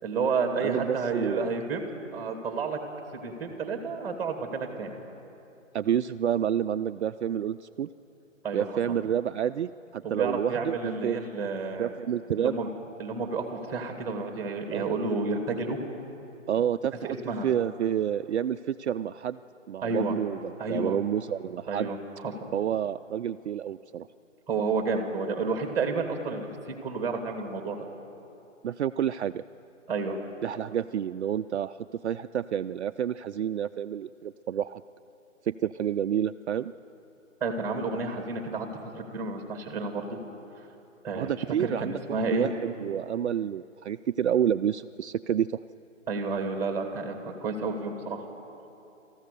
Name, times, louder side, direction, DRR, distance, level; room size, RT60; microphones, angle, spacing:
voice 1, 0.0-1.8 2.1-2.8 3.2-4.9 8.4-8.6 10.0-11.9 12.4-12.7 13.0-15.8 17.0-17.5 19.8-20.1 20.6-21.0 21.7-22.0 22.2-22.3 24.5-27.8 29.9-30.2 37.4-38.7 38.9-40.2 41.0-41.3 41.6-42.5 46.1-48.2, right 4 dB, 5° right, 4 dB, 2.0 m, -30 dB
voice 2, 0.6-1.5 5.7-7.9 8.5-11.2 11.8-12.5 14.7-14.9 16.5-17.2 17.4-19.4 19.7-21.9 22.5-24.1 28.6-29.4 30.4-34.8 35.4-36.7 41.1-45.6, right 9 dB, 60° right, 9 dB, 0.5 m, -29 dB
28.5 x 14.5 x 6.8 m, 2.8 s
hypercardioid pair, 150°, 38 cm